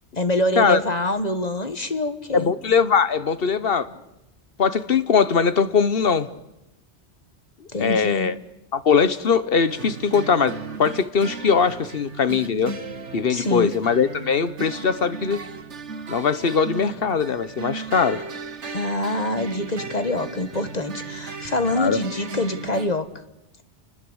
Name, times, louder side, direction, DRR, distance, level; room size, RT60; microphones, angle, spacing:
voice 1, 0.2-2.5 7.7-8.3 13.3-13.7 18.7-23.1, left 1 dB, 35° left, 10 dB, 1.6 m, -25 dB
voice 2, 2.3-3.9 4.6-6.3 7.8-8.3 8.7-12.7 13.1-15.4 16.1-18.3 21.8-22.0, left 6 dB, 55° left, 14 dB, 1.3 m, -21 dB
sound 1, 9.7-22.9, right 4 dB, 80° right, 1.7 m, -36 dB
29.0 x 20.5 x 8.0 m, 0.91 s
omnidirectional pair, 1.2 m